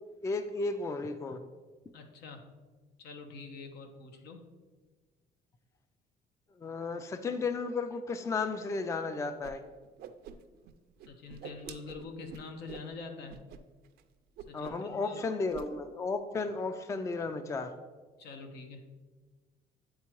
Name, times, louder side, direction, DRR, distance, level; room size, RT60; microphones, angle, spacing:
voice 1, 0.2-1.4 6.6-9.6 14.5-17.7, left 3 dB, 15° left, 9 dB, 0.3 m, -34 dB
voice 2, 1.9-2.5 3.0-4.5 11.1-13.4 14.5-15.2 18.2-18.8, left 4 dB, 75° left, 5 dB, 0.9 m, -45 dB
Whoosh swoosh swish, 9.4-9.5 9.8-10.7 11.0-12.9 13.3-13.6 13.8-14.0 14.4-14.9 15.1-15.7, right 8 dB, 70° right, 0.4 m, -47 dB
9.5 x 3.7 x 3.0 m, 1.3 s
cardioid pair, 110°, 17 cm